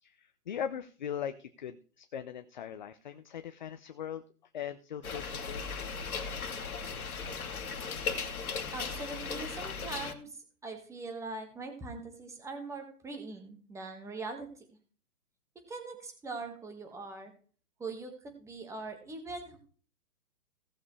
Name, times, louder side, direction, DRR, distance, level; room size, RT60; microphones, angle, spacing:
voice 1, 0.0-4.2 4.5-5.7, left 8 dB, 30° left, 10 dB, 0.5 m, -40 dB
sound 1, 5.0-10.1, left 5 dB, 65° left, 2.0 m, -37 dB
voice 2, 8.7-14.6 15.7-17.3 17.8-19.6, right 3 dB, 5° right, 4 dB, 1.6 m, -42 dB
17.0 x 7.2 x 3.2 m, 0.41 s
hypercardioid pair, 140°, 46 cm